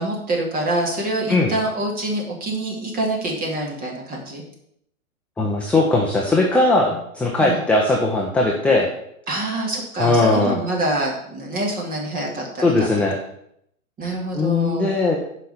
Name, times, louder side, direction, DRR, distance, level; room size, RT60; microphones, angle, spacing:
voice 1, 0.0-4.4 7.4-7.6 9.3-13.0 14.0-14.9, right 1 dB, 20° right, -1 dB, 2.6 m, -26 dB
voice 2, 5.4-8.9 10.0-10.6 12.6-13.2 14.3-15.2, left 2 dB, 5° left, -1 dB, 0.5 m, -19 dB
7.5 x 5.2 x 7.1 m, 0.74 s
hypercardioid pair, 130°, 43 cm